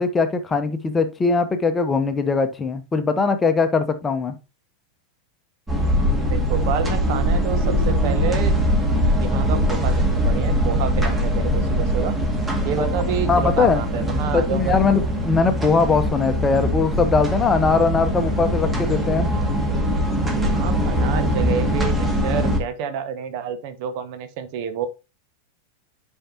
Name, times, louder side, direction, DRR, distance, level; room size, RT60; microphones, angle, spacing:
voice 1, 0.0-4.4 12.8-12.9 13.3-13.8 14.3-19.3, left 4 dB, 15° left, 1.0 m, -20 dB
sound 1, 5.7-22.6, equal, 10° right, 2.0 m, -22 dB
voice 2, 6.3-8.6 9.2-12.1 12.6-14.7 20.5-24.9, right 7 dB, 45° right, 1.1 m, -29 dB
10.0 x 5.5 x 2.9 m
figure-of-eight pair, 90°, 0 cm